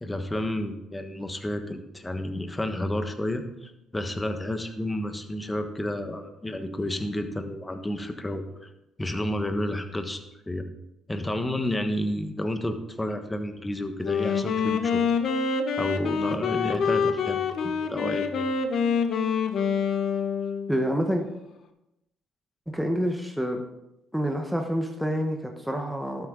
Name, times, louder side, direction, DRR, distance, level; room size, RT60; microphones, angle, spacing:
voice 1, 0.0-8.7 9.0-10.6 11.1-15.0 15.8-18.4, left 1 dB, 15° left, 7 dB, 1.3 m, -31 dB
Wind instrument woodwind instrument, 14.0-20.8, left 6 dB, 60° left, 1.0 m, -26 dB
voice 2, 20.7-21.2 22.7-23.6 24.1-26.3, equal, 5° right, 3 dB, 1.1 m, -27 dB
12.0 x 8.2 x 3.9 m, 0.91 s
supercardioid pair, 75°, 0 cm